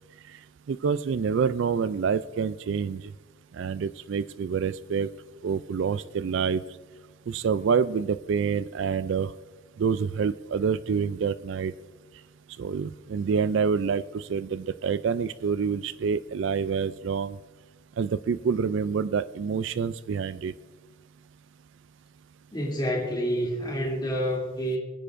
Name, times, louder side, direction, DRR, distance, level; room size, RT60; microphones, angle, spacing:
voice 1, 0.7-3.1 3.5-5.1 5.4-6.6 7.3-9.3 9.8-11.7 12.6-17.4 18.0-20.5, right 6 dB, 60° right, 15 dB, 0.3 m, -27 dB
voice 2, 22.5-24.8, equal, 20° left, -3 dB, 2.9 m, -28 dB
25.0 x 9.9 x 2.6 m, 1.3 s
head